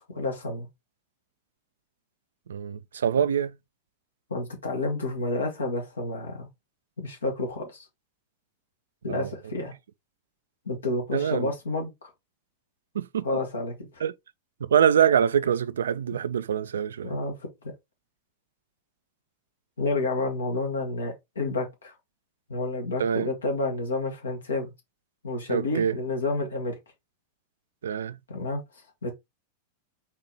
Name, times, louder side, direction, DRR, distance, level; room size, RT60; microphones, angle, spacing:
voice 1, 0.1-0.7 4.3-6.5 7.0-7.8 9.0-9.7 10.6-12.1 13.2-13.7 17.0-17.4 17.6-17.7 19.8-21.9 22.5-24.7 25.2-26.8 28.3-28.6 29.0-29.1, left 2 dB, 70° left, 1.5 m, -30 dB
voice 2, 2.5-3.6 9.1-9.3 11.1-11.5 13.0-13.2 14.0-14.1 14.6-17.2 23.0-23.3 25.5-26.0 27.8-28.2, right 8 dB, 65° right, 0.3 m, -24 dB
4.2 x 2.9 x 4.0 m
figure-of-eight pair, 90°, 0 cm